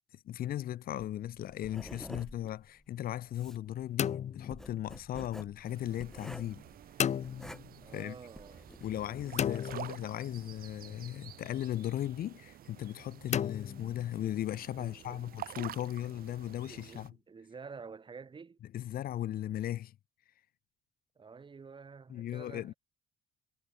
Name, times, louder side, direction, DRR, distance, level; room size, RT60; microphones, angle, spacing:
voice 1, 0.1-6.6 7.9-8.1 8.8-17.1 18.7-19.9 22.1-22.7, left 12 dB, 60° left, 1.6 m, -37 dB
Writing, 1.0-9.9, equal, 5° left, 2.8 m, -50 dB
sound 1, 4.0-5.3 7.0-8.0 9.4-10.6 13.3-14.5, left 9 dB, 45° left, 1.1 m, -35 dB
sound 2, 5.6-17.1, right 12 dB, 60° right, 2.1 m, -50 dB
voice 2, 7.8-8.7 14.8-15.3 15.9-16.0 16.3-18.6 21.2-22.8, right 5 dB, 30° right, 6.2 m, -50 dB
cardioid pair, 110°, 17 cm